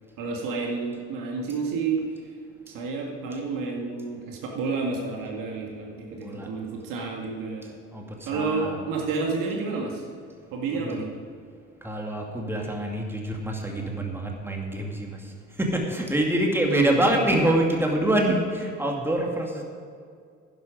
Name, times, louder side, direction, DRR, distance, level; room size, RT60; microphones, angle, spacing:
voice 1, 0.2-2.0 2.7-7.7 8.3-10.0 10.5-11.1 16.6-17.1, right 4 dB, 60° right, 0 dB, 2.0 m, -30 dB
voice 2, 6.1-6.5 7.9-8.8 10.7-11.0 11.8-15.3 15.6-19.6, right 1 dB, 5° right, 0 dB, 2.3 m, -26 dB
11.0 x 10.5 x 5.1 m, 2.2 s
hypercardioid pair, 55°, 37 cm